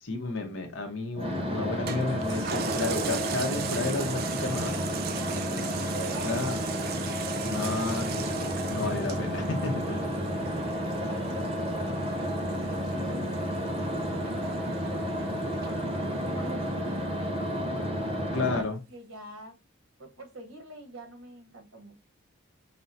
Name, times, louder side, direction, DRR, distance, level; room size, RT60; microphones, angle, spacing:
voice 1, 0.0-4.8 6.2-6.6 7.4-10.0 18.3-18.8, left 3 dB, 70° left, 4 dB, 1.0 m, -32 dB
sound 1, 1.2-18.6, equal, 25° right, 0.8 m, -31 dB
Toilet flush, 1.9-16.7 17.2-17.3, right 7 dB, 45° right, 0.4 m, -39 dB
voice 2, 5.1-5.6 5.9-6.8 9.9-10.3 10.6-15.1 15.6-18.0 18.5-19.5 20.0-21.9, right 2 dB, 85° right, 4 dB, 1.2 m, -45 dB
5.3 x 2.2 x 2.7 m, 0.26 s
head